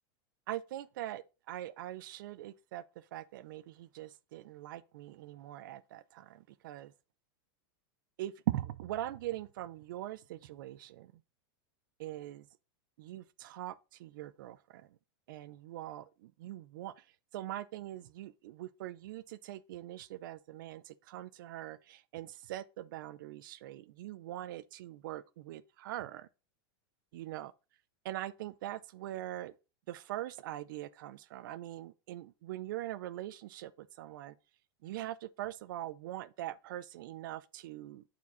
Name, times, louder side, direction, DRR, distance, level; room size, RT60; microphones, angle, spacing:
voice 1, 0.5-2.8 3.1-6.9 8.2-11.1 12.0-12.5 13.0-14.9 15.3-17.0 17.3-26.3 27.1-27.5 28.0-29.5 29.9-34.3 34.8-38.0, right 14 dB, 55° right, 0.5 m, -42 dB
8.5 x 4.5 x 3.9 m
supercardioid pair, 180°, 13 cm